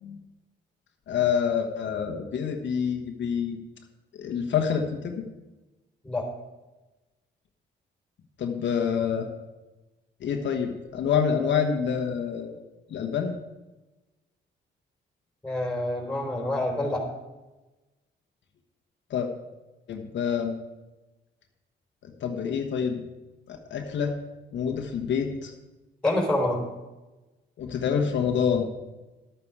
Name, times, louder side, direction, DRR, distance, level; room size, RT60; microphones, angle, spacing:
voice 1, 1.1-3.6 4.2-5.3 8.4-9.3 10.2-12.6 12.9-13.3 19.1-19.3 19.9-20.6 22.0-23.0 23.5-24.1 24.5-25.5 27.6-28.7, left 7 dB, 70° left, 3 dB, 1.3 m, -27 dB
voice 2, 15.4-17.0 26.0-26.6, left 1 dB, 5° left, 1 dB, 3.6 m, -26 dB
11.5 x 8.8 x 4.8 m, 1.1 s
cardioid pair, 90°, 20 cm